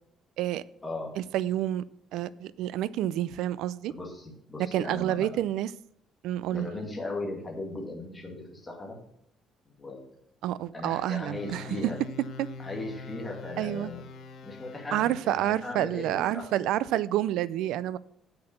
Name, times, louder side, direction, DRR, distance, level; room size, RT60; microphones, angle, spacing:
voice 1, 1.2-1.8 2.1-3.9 4.7-5.7 6.2-6.7 10.4-11.6 12.4-12.5 13.6-13.9 14.9-18.0, right 13 dB, 75° right, 0.4 m, -29 dB
voice 2, 3.9-5.3 6.5-9.0 9.7-10.1 10.7-12.0 12.6-14.0 14.4-16.1 16.3-16.5, left 2 dB, 10° left, 2.1 m, -37 dB
sound 1, 11.3-15.8, left 4 dB, 50° left, 0.9 m, -44 dB
8.0 x 6.7 x 6.7 m
cardioid pair, 170°, 0 cm